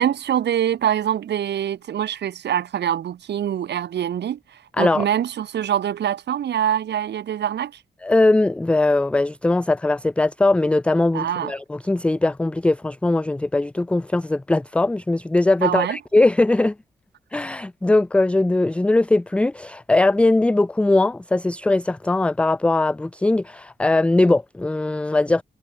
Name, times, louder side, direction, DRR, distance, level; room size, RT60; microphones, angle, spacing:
voice 1, 0.0-7.8 11.1-11.5 15.6-16.0, right 10 dB, 85° right, 1.1 m, -24 dB
voice 2, 8.0-16.8 17.3-25.4, left 2 dB, 5° left, 0.3 m, -20 dB
wide cardioid pair, 160°, 17 cm